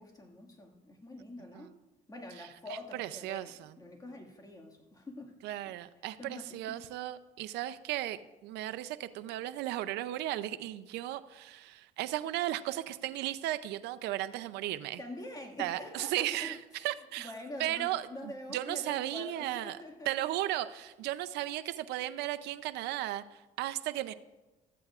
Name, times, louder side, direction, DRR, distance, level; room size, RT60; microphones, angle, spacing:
voice 1, 0.0-1.8 2.1-5.3 5.7-5.8 6.2-6.8 15.0-16.9 17.2-20.3 20.6-20.7 21.0-21.1, left 1 dB, 20° left, 2 dB, 1.9 m, -46 dB
voice 2, 3.0-3.7 5.4-15.0 15.6-16.6 16.8-17.3 17.6-19.8 20.1-24.1, right 14 dB, 85° right, 12 dB, 0.5 m, -35 dB
15.5 x 13.5 x 2.4 m, 1.1 s
cardioid pair, 110°, 17 cm